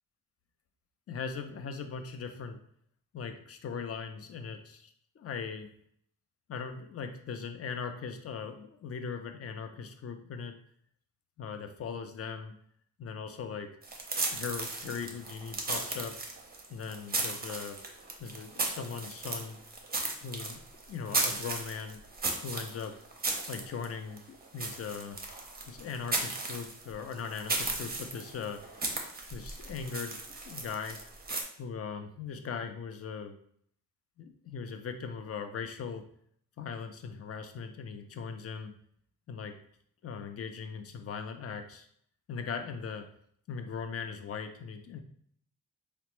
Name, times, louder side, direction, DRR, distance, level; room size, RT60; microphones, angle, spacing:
voice 1, 1.1-2.6 3.1-5.7 6.5-10.5 11.4-12.5 13.0-13.7 14.3-16.2 16.7-17.8 18.2-19.6 20.2-20.6 20.9-22.0 22.4-22.9 23.5-25.2 25.7-28.6 29.3-31.0 31.6-33.4 34.2-36.1 36.6-38.7 39.3-39.5 40.0-41.9 42.3-43.1 43.5-45.0, left 6 dB, 40° left, 7 dB, 0.4 m, -39 dB
sound 1, 13.8-31.4, right 3 dB, 25° right, 0.5 m, -36 dB
4.1 x 2.0 x 3.0 m, 0.64 s
wide cardioid pair, 130°, 37 cm